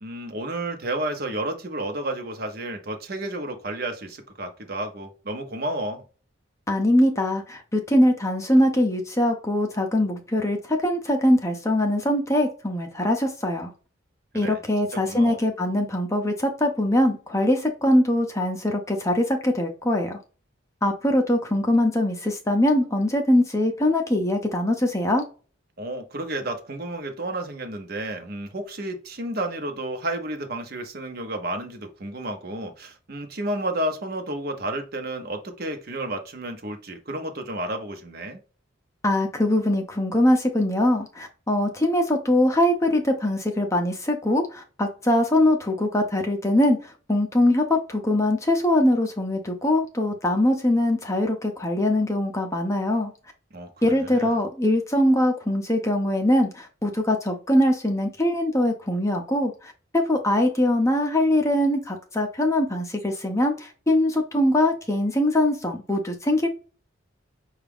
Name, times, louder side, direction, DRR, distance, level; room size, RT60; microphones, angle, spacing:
voice 1, 0.0-6.0 14.3-14.6 15.1-15.4 25.8-38.4 53.5-54.4, right 1 dB, 50° right, 0.8 m, -31 dB
voice 2, 6.7-13.7 14.3-20.2 20.8-25.2 39.0-53.1 53.8-66.5, left 1 dB, 15° left, 0.6 m, -22 dB
5.8 x 2.4 x 3.5 m
head